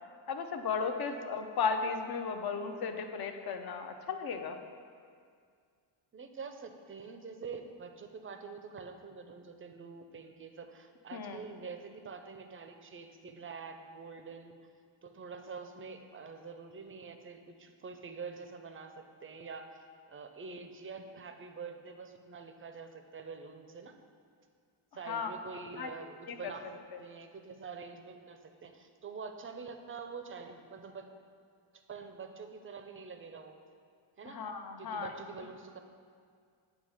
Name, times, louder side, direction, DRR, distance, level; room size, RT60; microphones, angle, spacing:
voice 1, 0.3-4.6 11.1-11.4 25.1-25.3 25.8-25.9 26.3-26.5 34.3-35.1, left 5 dB, 50° left, 6 dB, 0.6 m, -35 dB
voice 2, 6.1-14.6 15.0-19.7 20.1-23.9 24.9-31.1 31.7-33.6 34.2-34.4 34.8-35.8, right 5 dB, 25° right, 6 dB, 0.5 m, -46 dB
8.2 x 2.9 x 5.5 m, 2.2 s
cardioid pair, 95°, 48 cm